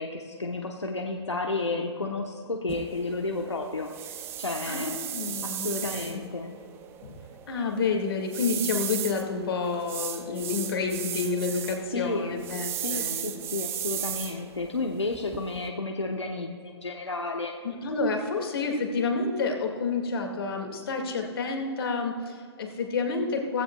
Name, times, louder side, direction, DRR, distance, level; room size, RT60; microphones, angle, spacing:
voice 1, 0.0-5.0 5.4-6.5 11.9-12.4 12.8-17.5, left 3 dB, 90° left, 2 dB, 1.0 m, -32 dB
sound 1, 2.7-15.7, right 10 dB, 15° right, 0.6 m, -36 dB
voice 2, 4.7-6.2 7.0-13.3 17.6-23.6, left 4 dB, 55° left, 3 dB, 2.1 m, -29 dB
16.0 x 15.5 x 2.3 m, 2.2 s
figure-of-eight pair, 130°, 14 cm